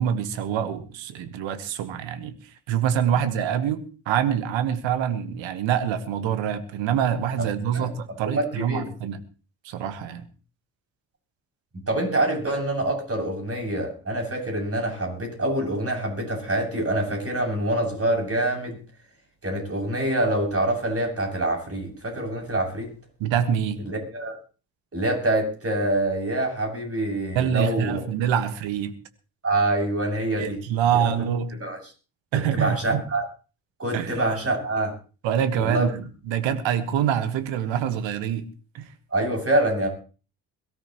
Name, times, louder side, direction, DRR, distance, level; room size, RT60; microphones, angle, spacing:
voice 1, 0.0-2.4 2.7-9.2 9.6-10.2 23.2-23.8 27.3-28.9 30.4-31.5 32.3-33.0 33.9-34.2 35.2-38.4 38.7-38.9, right 9 dB, 70° right, 1.7 m, -25 dB
voice 2, 8.2-8.8 11.7-18.8 19.4-22.9 23.9-24.4 24.9-28.0 29.4-30.6 31.6-31.8 32.5-33.2 33.8-34.9 35.6-35.9 39.1-39.9, right 1 dB, 30° right, 7.4 m, -25 dB
22.5 x 13.5 x 3.1 m
hypercardioid pair, 55°, 47 cm